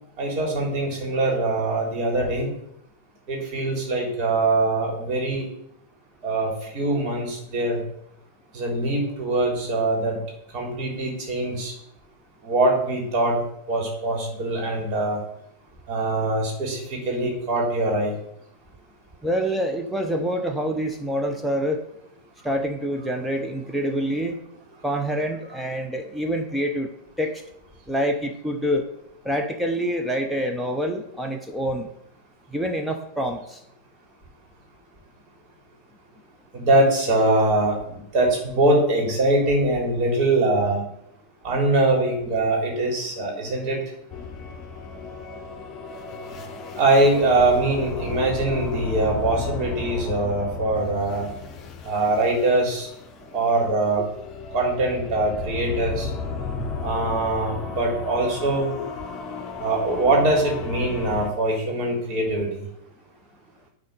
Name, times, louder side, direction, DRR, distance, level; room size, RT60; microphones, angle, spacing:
voice 1, 0.2-2.5 3.3-5.5 6.2-7.8 8.5-10.2 10.5-11.7 12.4-13.4 13.7-15.2 15.9-18.1 36.5-40.8 41.4-43.8 46.7-51.3 51.8-52.9 53.3-54.0 54.5-56.1 56.8-58.7 59.6-62.6, right 2 dB, 40° right, 0 dB, 3.3 m, -22 dB
voice 2, 19.2-21.8 22.4-24.4 24.8-26.9 27.2-27.4 27.9-28.9 29.2-31.9 32.5-33.6 56.6-56.7, equal, ahead, 3 dB, 0.8 m, -26 dB
sound 1, 44.1-61.3, left 5 dB, 30° left, 1.0 m, -34 dB
9.4 x 3.9 x 6.5 m, 0.76 s
figure-of-eight pair, 90°, 0 cm